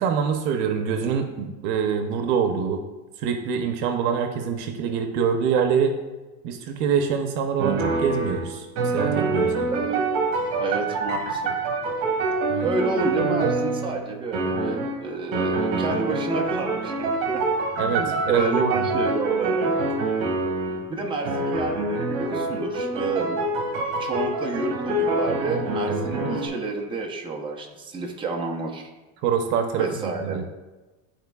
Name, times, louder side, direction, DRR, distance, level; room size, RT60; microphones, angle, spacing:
voice 1, 0.0-2.8 3.2-5.9 6.4-8.7 8.9-9.7 12.5-12.7 17.8-19.0 25.9-26.1 29.2-29.9 30.2-30.4, right 7 dB, 70° right, 6 dB, 0.8 m, -25 dB
sound 1, 7.6-14.1 14.3-15.0 15.3-20.9 21.2-26.5, right 2 dB, 50° right, 1.4 m, -26 dB
voice 2, 10.6-11.5 12.6-17.4 17.8-19.7 20.9-23.4 24.0-28.9 29.8-30.4, right 3 dB, 10° right, 0 dB, 0.7 m, -29 dB
12.0 x 4.4 x 2.3 m, 1.2 s
cardioid pair, 155°, 43 cm